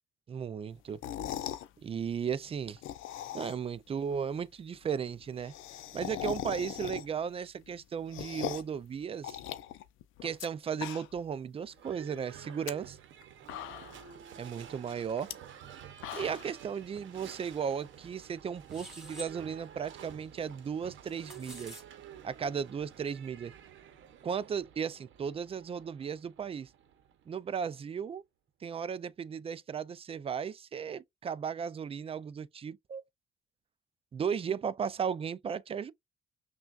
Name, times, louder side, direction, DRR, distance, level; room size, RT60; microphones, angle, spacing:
voice 1, 0.3-1.0 1.8-2.8 3.3-5.5 5.9-9.4 10.2-13.0 14.4-15.3 16.1-21.8 22.2-23.5 24.2-26.7 27.3-28.2 28.6-33.0 34.1-35.9, right 7 dB, 30° right, 0.3 m, -35 dB
sound 1, 0.9-1.7 2.7-3.8 4.1-4.2 4.4-4.5 4.7-4.8 5.1-7.3 7.7-8.8 9.2-10.5 10.7-11.3 11.7-11.8 12.4-12.7 13.2-13.3 13.5-14.1 15.2-15.3 15.8-16.6, left 12 dB, 85° left, 0.5 m, -40 dB
Livestock farm animals working animals / Bell, 11.7-27.6, right 9 dB, 75° right, 0.8 m, -51 dB
sound 2, 18.7-19.3 20.9-21.8, equal, ahead, 2.1 m, -47 dB
5.8 x 2.3 x 2.4 m
cardioid pair, 90°, 20 cm